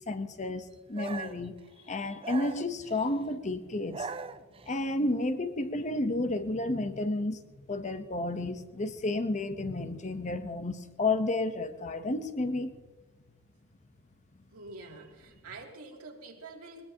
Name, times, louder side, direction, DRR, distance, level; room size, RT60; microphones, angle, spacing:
voice 1, 0.1-1.6 1.9-4.1 4.7-7.4 7.7-12.8, left 2 dB, 35° left, 9 dB, 0.9 m, -31 dB
sound 1, 1.0-1.5 2.2-3.1 3.7-4.8, right 4 dB, 25° right, 0.5 m, -40 dB
voice 2, 14.5-16.9, right 3 dB, 90° right, 0 dB, 2.6 m, -46 dB
20.5 x 20.5 x 2.9 m, 1.3 s
head